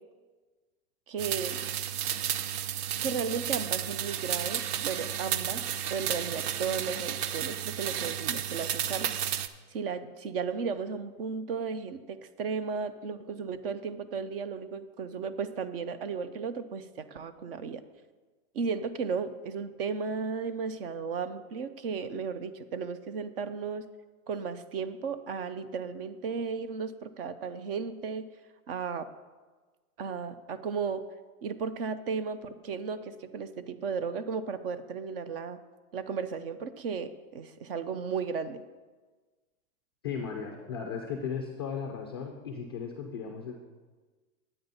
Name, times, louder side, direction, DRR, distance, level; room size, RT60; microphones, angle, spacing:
voice 1, 1.1-1.6 3.0-5.6 5.9-9.1 9.7-17.8 18.5-23.9 24.3-28.3 28.7-29.1 30.0-31.0 31.4-35.6 35.9-38.6, right 5 dB, 40° right, 13 dB, 0.5 m, -34 dB
sound 1, 1.2-9.5, right 10 dB, 80° right, 0.7 m, -32 dB
voice 2, 40.0-43.5, left 6 dB, 20° left, 1 dB, 0.3 m, -36 dB
10.5 x 8.8 x 4.0 m, 1.3 s
supercardioid pair, 155°, 45 cm